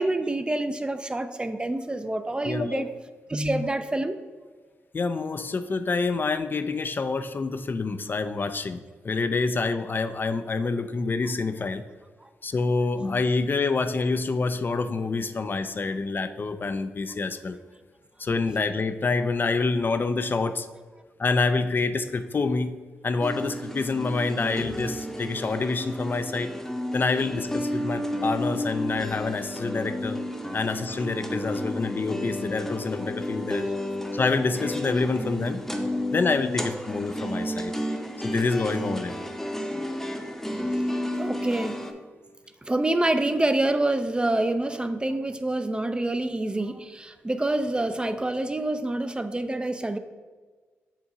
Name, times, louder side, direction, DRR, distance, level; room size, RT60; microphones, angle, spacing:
voice 1, 0.0-2.9 3.3-4.2 34.0-34.1 40.9-41.8 42.6-50.0, right 2 dB, 20° right, 9 dB, 0.4 m, -27 dB
voice 2, 2.5-2.8 4.9-11.8 12.4-17.6 18.2-20.7 21.2-22.8 23.0-26.5 26.9-30.2 30.5-33.7 34.1-35.6 36.1-37.7 38.2-39.2, left 3 dB, 40° left, 10 dB, 0.4 m, -27 dB
sound 1, 23.2-41.9, left 1 dB, 5° left, 0.8 m, -32 dB
7.2 x 2.7 x 4.7 m, 1.4 s
supercardioid pair, 50°, 5 cm